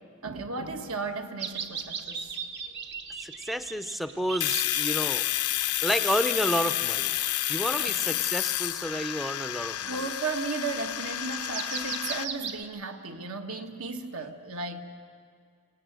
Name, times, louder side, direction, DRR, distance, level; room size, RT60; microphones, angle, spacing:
voice 1, 0.2-2.3 7.8-8.2 9.9-14.8, right 3 dB, 70° right, 5 dB, 1.4 m, -35 dB
sound 1, 1.4-4.9 5.6-6.8 7.3-8.3 8.7-8.8 9.5-12.6, right 6 dB, 50° right, 1.2 m, -38 dB
voice 2, 3.2-5.3 5.8-7.2 7.5-10.0, equal, ahead, 9 dB, 0.5 m, -30 dB
Domestic sounds home sounds, 4.4-12.2, left 14 dB, 80° left, 0.6 m, -30 dB
24.5 x 19.0 x 8.1 m, 2.3 s
head